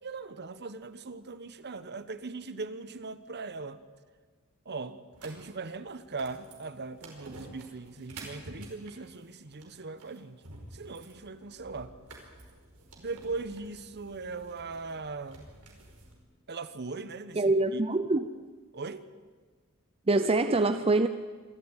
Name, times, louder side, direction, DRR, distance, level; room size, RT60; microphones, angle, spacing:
voice 1, 0.0-3.8 4.6-10.4 10.7-11.9 13.0-15.5 16.5-17.8 18.7-19.1, right 3 dB, 50° right, 1.1 m, -39 dB
sound 1, 5.1-16.1, right 2 dB, 80° right, 4.8 m, -50 dB
voice 2, 17.4-18.3 20.1-21.1, right 2 dB, 25° right, 0.6 m, -24 dB
26.0 x 13.5 x 9.0 m
head